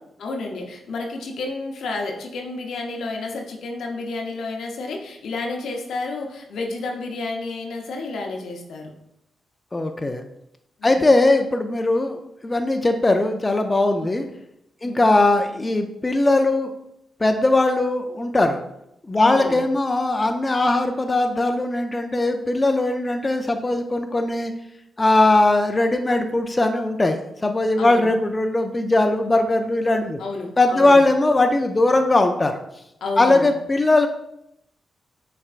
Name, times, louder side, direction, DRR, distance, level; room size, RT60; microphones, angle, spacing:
voice 1, 0.2-8.9 10.8-11.1 14.8-15.0 19.2-19.7 27.8-28.1 30.2-31.1 33.0-33.5, left 3 dB, 75° left, 1 dB, 0.8 m, -30 dB
voice 2, 9.7-10.2 10.8-14.2 14.8-16.7 17.2-18.6 19.1-24.5 25.0-30.2 30.6-32.6 33.2-34.1, left 2 dB, 30° left, 5 dB, 0.4 m, -19 dB
5.6 x 3.4 x 2.4 m, 0.80 s
supercardioid pair, 50°, 0 cm